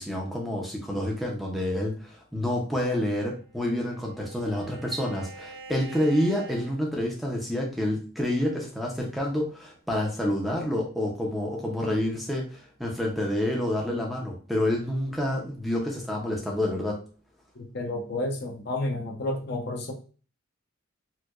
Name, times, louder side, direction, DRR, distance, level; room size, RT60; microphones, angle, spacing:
voice 1, 0.0-17.0, left 1 dB, ahead, -2 dB, 0.6 m, -28 dB
Bowed string instrument, 3.3-7.6, right 3 dB, 50° right, 0.7 m, -47 dB
voice 2, 17.5-19.9, left 2 dB, 50° left, 2 dB, 0.7 m, -31 dB
4.5 x 2.2 x 2.4 m, 0.38 s
head